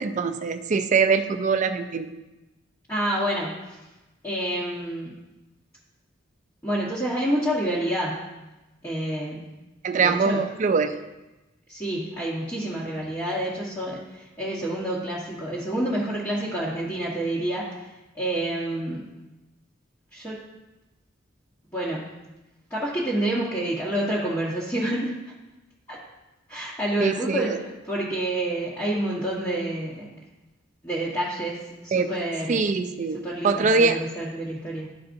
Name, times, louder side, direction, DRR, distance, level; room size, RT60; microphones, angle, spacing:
voice 1, 0.0-2.1 9.8-10.9 27.0-27.6 31.9-32.1 32.5-33.2 33.4-34.0, right 4 dB, 40° right, 9 dB, 0.4 m, -23 dB
voice 2, 2.9-3.8 4.2-5.1 6.6-8.4 8.8-9.5 9.9-10.4 11.7-19.1 20.1-20.4 21.7-22.1 22.7-25.1 25.9-26.0 26.5-27.5 27.8-30.1 30.8-32.7 33.2-35.0, right 1 dB, 15° left, -9 dB, 1.1 m, -28 dB
11.5 x 4.1 x 2.6 m, 1.0 s
head